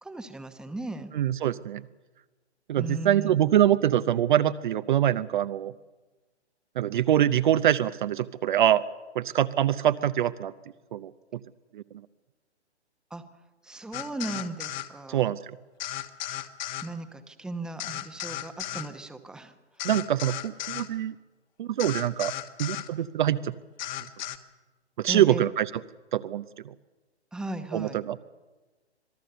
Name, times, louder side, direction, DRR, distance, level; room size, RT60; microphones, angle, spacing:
voice 1, 0.0-1.1 2.8-3.4 13.1-13.2 13.6-15.3 16.8-19.5 25.1-25.5 27.3-28.0, right 2 dB, ahead, 8 dB, 1.0 m, -37 dB
voice 2, 1.1-1.8 2.7-5.7 6.8-8.8 9.1-10.5 10.9-11.1 11.7-11.8 15.1-15.4 19.8-21.1 21.6-22.3 22.6-23.5 25.0-25.7 26.1-26.7 27.7-28.2, right 11 dB, 45° right, 13 dB, 0.7 m, -24 dB
sound 1, 13.9-14.9 15.8-16.9 17.8-18.9 19.8-20.9 21.8-22.9 23.8-24.4, left 13 dB, 40° left, 1.4 m, -35 dB
26.0 x 18.5 x 6.8 m, 1.2 s
figure-of-eight pair, 125°, 34 cm